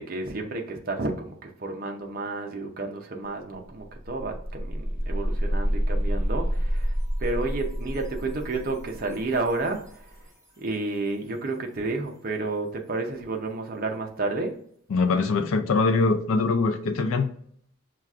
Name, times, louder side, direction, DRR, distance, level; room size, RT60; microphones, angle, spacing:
voice 1, 0.0-6.9 7.2-9.8 10.6-14.5, right 3 dB, 45° right, 2 dB, 0.6 m, -31 dB
sound 1, 3.2-3.3 3.6-10.4, equal, 15° right, 1.3 m, -29 dB
voice 2, 14.9-17.3, left 4 dB, 75° left, 7 dB, 0.4 m, -23 dB
5.7 x 2.4 x 2.4 m, 0.63 s
head